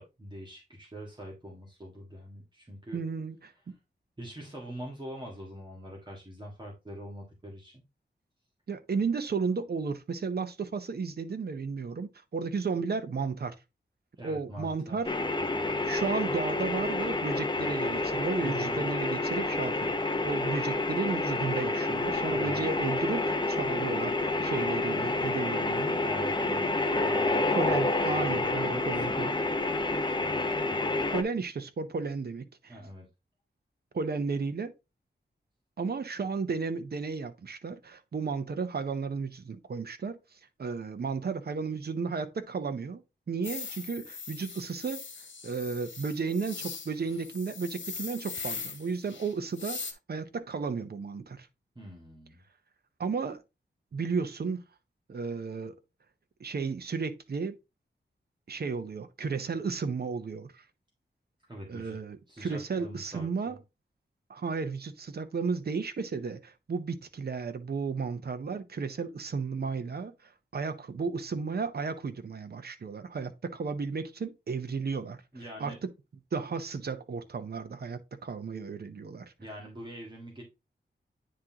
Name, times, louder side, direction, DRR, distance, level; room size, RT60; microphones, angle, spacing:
voice 1, 0.0-3.0 4.2-7.8 14.2-15.1 15.4-15.7 18.4-18.9 22.3-22.6 26.0-27.8 28.6-28.8 29.2-29.4 30.0-31.0 32.7-33.1 51.7-52.4 61.5-62.0 62.3-63.6 75.3-75.8 79.4-80.4, right 1 dB, 25° right, 1.8 m, -44 dB
voice 2, 2.9-3.7 8.7-13.5 14.2-15.1 15.8-20.0 20.2-26.0 26.4-26.8 27.5-29.3 31.1-32.8 33.9-34.7 35.8-43.0 43.3-45.0 45.4-51.5 53.0-53.4 53.9-54.6 55.1-55.8 56.4-57.6 58.5-60.6 61.7-63.6 64.3-75.2 75.6-75.9 76.3-79.3, right 5 dB, 55° right, 0.8 m, -33 dB
sound 1, 15.0-31.2, left 2 dB, 25° left, 0.7 m, -29 dB
sound 2, 43.4-49.9, left 5 dB, 85° left, 1.3 m, -40 dB
9.4 x 3.7 x 2.9 m
wide cardioid pair, 110°, 19 cm